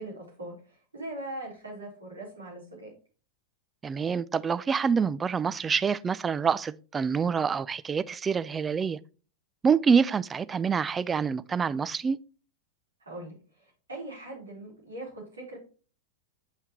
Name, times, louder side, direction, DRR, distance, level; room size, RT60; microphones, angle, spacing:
voice 1, 0.0-2.9 13.0-15.6, right 1 dB, 75° right, 3.9 m, -41 dB
voice 2, 3.8-9.0 9.6-12.2, right 6 dB, 20° right, 0.4 m, -26 dB
8.1 x 5.6 x 3.0 m
figure-of-eight pair, 90°, 0 cm